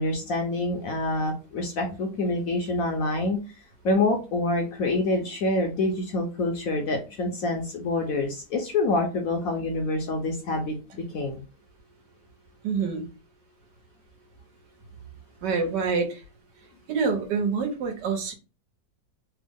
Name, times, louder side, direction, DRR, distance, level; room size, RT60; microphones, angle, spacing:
voice 1, 0.0-3.4 3.8-11.4, left 2 dB, 65° left, 3 dB, 0.9 m, -26 dB
voice 2, 12.6-13.0 15.4-16.2 16.9-18.3, right 5 dB, 75° right, 4 dB, 1.4 m, -26 dB
3.4 x 2.0 x 3.5 m, 0.32 s
omnidirectional pair, 1.9 m